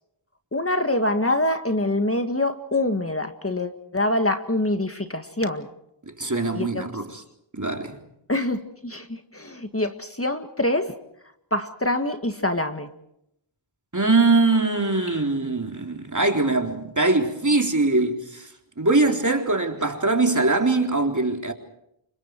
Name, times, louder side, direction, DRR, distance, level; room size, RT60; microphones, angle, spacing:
voice 1, 0.5-5.7 6.5-6.9 8.3-10.9 11.5-12.9, left 1 dB, 30° left, 1.9 m, -25 dB
voice 2, 6.2-7.2 7.5-8.0 13.9-18.5 18.8-21.5, right 3 dB, 35° right, 3.7 m, -22 dB
29.5 x 26.0 x 4.7 m
wide cardioid pair, 45°, 49 cm